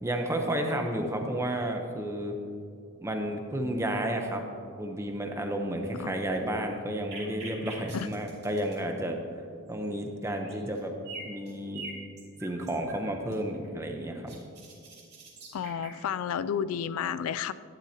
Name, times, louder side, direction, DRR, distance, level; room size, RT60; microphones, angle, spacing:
voice 1, 0.0-2.3 3.0-4.4 4.8-9.2 9.7-11.0 11.2-11.8 12.4-14.3, right 1 dB, 15° right, 3 dB, 0.8 m, -31 dB
sound 1, 7.1-8.8 9.7-9.8 10.3-10.8 11.1-13.0 13.3-16.0, right 3 dB, 50° right, 2.5 m, -44 dB
voice 2, 15.5-17.5, left 8 dB, 75° left, 15 dB, 0.3 m, -31 dB
12.0 x 11.0 x 2.9 m, 2.4 s
head